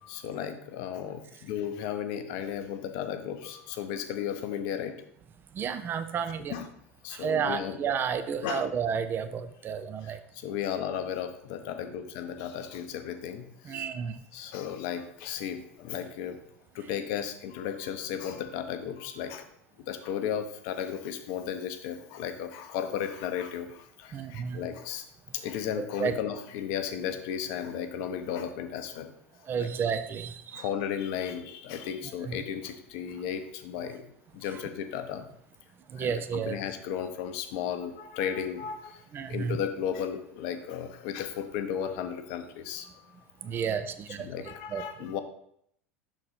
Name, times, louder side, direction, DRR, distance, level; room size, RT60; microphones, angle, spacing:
voice 1, 0.0-5.0 6.5-6.7 7.0-7.8 8.4-8.7 10.0-13.8 14.3-16.4 16.7-19.5 19.8-25.0 25.3-29.1 29.5-29.7 30.5-34.0 34.3-35.3 36.0-39.0 39.3-42.9 43.5-43.7 44.2-45.2, left 8 dB, 50° left, 8 dB, 0.7 m, -34 dB
voice 2, 5.5-6.5 7.1-10.2 13.6-14.2 24.1-24.6 25.8-26.1 29.5-30.7 32.3-32.4 35.9-36.6 39.1-39.6 43.4-44.3 44.7-45.1, right 7 dB, 30° right, 9 dB, 0.5 m, -31 dB
6.1 x 4.0 x 4.2 m, 0.70 s
figure-of-eight pair, 80°, 7 cm